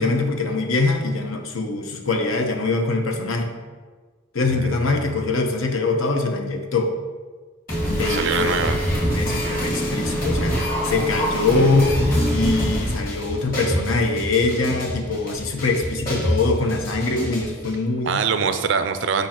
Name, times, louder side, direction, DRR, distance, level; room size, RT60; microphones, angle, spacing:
voice 1, 0.0-3.5 4.3-6.9 7.9-8.6 9.1-10.6 10.8-12.0 12.3-18.2, left 3 dB, 75° left, 4 dB, 0.8 m, -23 dB
voice 2, 4.4-5.1 8.0-8.8 18.0-19.3, right 5 dB, 60° right, 9 dB, 0.4 m, -24 dB
sound 1, 7.7-17.7, equal, 45° left, 1.9 m, -25 dB
8.1 x 5.0 x 2.9 m, 1.4 s
head